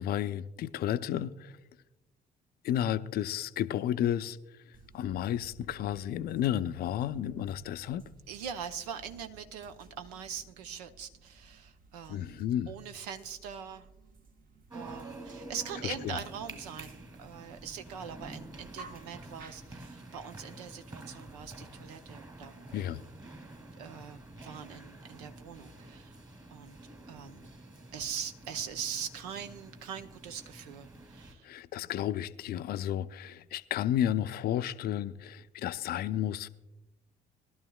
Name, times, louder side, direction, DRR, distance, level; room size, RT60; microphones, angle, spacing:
voice 1, 0.0-1.6 2.6-4.4 4.9-8.0 12.1-12.7 15.8-16.2 22.7-23.0 31.4-36.5, left 11 dB, 50° left, 0.5 m, -32 dB
sound 1, 4.7-20.0, right 3 dB, 45° right, 1.3 m, -55 dB
voice 2, 8.3-13.9 14.7-22.8 23.7-26.2 26.5-26.8 27.1-27.5 27.9-31.5, right 7 dB, 75° right, 0.7 m, -42 dB
sound 2, 14.7-31.3, right 2 dB, 20° right, 2.3 m, -48 dB
20.5 x 12.0 x 2.3 m
figure-of-eight pair, 50°, 20 cm